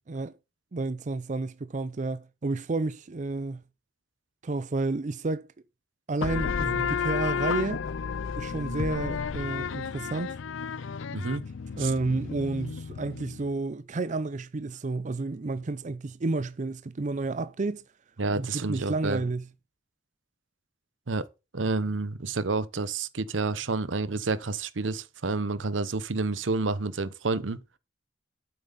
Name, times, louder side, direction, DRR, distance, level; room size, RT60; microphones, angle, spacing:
voice 1, 0.7-3.6 4.4-5.5 6.1-7.8 8.4-10.4 11.7-17.8 18.3-19.5, right 3 dB, 40° right, 0.5 m, -31 dB
sound 1, 6.2-13.5, left 6 dB, 85° left, 0.5 m, -32 dB
voice 2, 18.2-19.2 21.1-21.3 21.5-27.6, right 3 dB, 80° right, 0.9 m, -29 dB
8.7 x 7.8 x 4.0 m
head